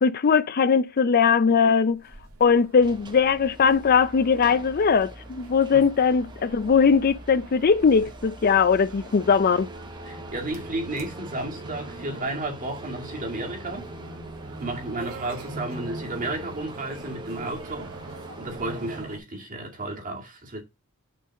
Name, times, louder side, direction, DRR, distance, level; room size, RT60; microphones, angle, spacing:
voice 1, 0.0-2.0 2.4-9.7, left 6 dB, 45° left, 0.4 m, -20 dB
sound 1, 1.9-19.2, right 2 dB, 85° right, 2.4 m, -44 dB
sound 2, 2.8-19.0, right 2 dB, 20° right, 0.9 m, -43 dB
voice 2, 10.1-13.9 14.6-17.9 18.4-20.6, right 2 dB, 40° right, 2.3 m, -33 dB
6.6 x 4.0 x 6.4 m
head